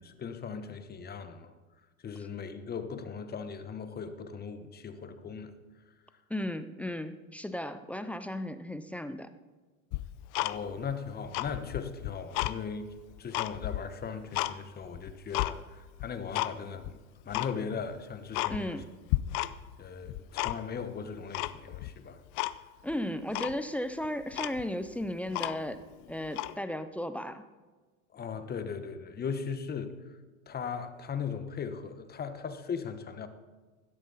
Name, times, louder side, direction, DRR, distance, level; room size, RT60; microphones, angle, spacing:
voice 1, 0.2-1.5 2.0-5.5 10.4-12.9 13.2-18.8 19.4-19.5 19.8-22.2 28.1-29.9 30.5-33.3, left 6 dB, 20° left, 9 dB, 1.2 m, -38 dB
voice 2, 6.3-9.3 18.5-18.9 22.8-25.8 26.1-27.4, left 1 dB, 5° left, 10 dB, 0.4 m, -35 dB
Tick-tock, 9.9-10.9 11.2-12.6 13.0-14.5 14.9-15.5 16.0-16.5 16.8-16.9 17.3-17.5 17.9-18.0 18.3-18.8 19.1-19.8 20.0-20.8 21.3-21.9 22.4-22.6 22.9-23.0 23.3-23.6 24.0-24.1 24.3-25.8 26.3-26.5, left 18 dB, 50° left, 0.7 m, -33 dB
16.5 x 12.5 x 4.0 m, 1.3 s
supercardioid pair, 120°, 42 cm